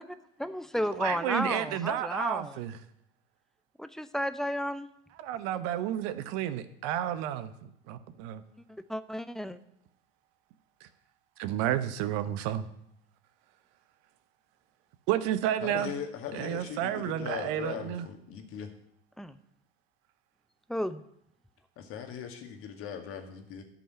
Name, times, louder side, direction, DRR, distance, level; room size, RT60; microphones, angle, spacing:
voice 1, 0.4-2.6 3.8-4.9 8.9-9.6 19.2-19.3 20.7-21.0, equal, ahead, 12 dB, 0.6 m, -32 dB
voice 2, 0.9-2.8 5.2-8.4 10.8-10.9 11.4-12.7 15.1-15.9 16.3-18.1, right 11 dB, 50° right, 12 dB, 0.9 m, -31 dB
voice 3, 15.6-18.7 21.8-23.6, left 8 dB, 45° left, 5 dB, 2.0 m, -39 dB
12.0 x 5.5 x 8.8 m, 0.76 s
figure-of-eight pair, 75°, 31 cm